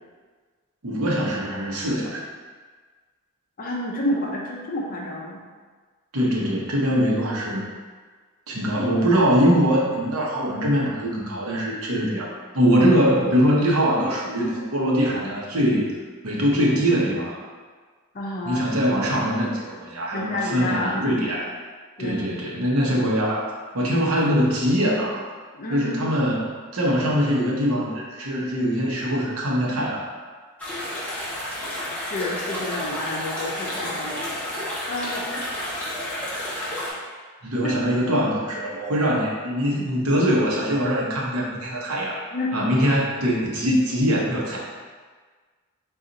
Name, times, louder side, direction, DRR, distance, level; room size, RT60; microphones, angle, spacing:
voice 1, 0.8-2.2 6.1-7.6 8.5-15.9 16.2-17.4 18.4-21.5 22.0-25.2 25.7-30.1 37.4-42.2 42.5-44.6, equal, 70° right, -3 dB, 0.9 m, -22 dB
voice 2, 3.6-5.4 18.1-18.6 20.1-21.1 22.0-22.3 25.5-26.1 31.9-34.6 34.9-35.5 39.8-39.9 42.3-42.6, left 1 dB, 40° left, -2 dB, 0.6 m, -30 dB
sound 1, 30.6-36.9, left 1 dB, 5° left, 0.9 m, -31 dB
4.0 x 2.4 x 3.8 m, 1.5 s
head